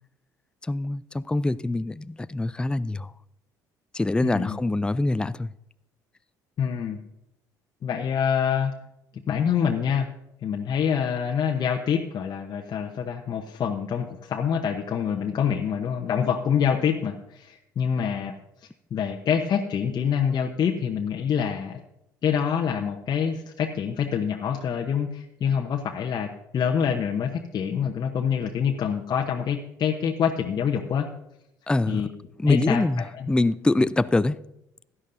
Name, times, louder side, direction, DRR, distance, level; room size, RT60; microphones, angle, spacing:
voice 1, 0.7-3.1 3.9-5.5 31.7-32.0 32.4-34.4, left 2 dB, 10° left, 0.4 m, -24 dB
voice 2, 4.2-4.6 6.6-7.0 7.8-8.7 9.3-10.1 10.4-18.3 18.9-21.8 22.2-31.1 31.9-32.1 32.5-33.4, left 7 dB, 45° left, 0.9 m, -26 dB
16.5 x 11.0 x 2.7 m
hypercardioid pair, 60°, 10 cm